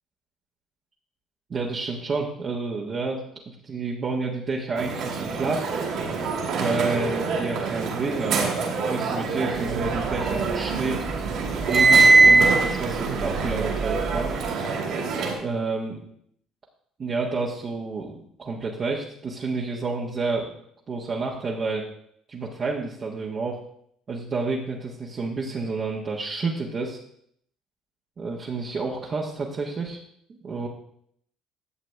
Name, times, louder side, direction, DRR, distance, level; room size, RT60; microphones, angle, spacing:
voice 1, 1.5-5.7 6.5-11.1 11.7-14.3 15.4-16.0 17.0-20.5 20.9-21.9 22.3-23.6 24.1-27.0 28.2-30.0 30.3-30.7, right 3 dB, 45° right, -3 dB, 1.4 m, -29 dB
Crowd, 4.7-15.3, right 4 dB, 65° right, 2.3 m, -28 dB
sound 1, 9.7-10.8 11.1-14.5, right 3 dB, 25° right, 0.4 m, -18 dB
11.0 x 7.5 x 3.4 m, 0.67 s
hypercardioid pair, 60°, 0 cm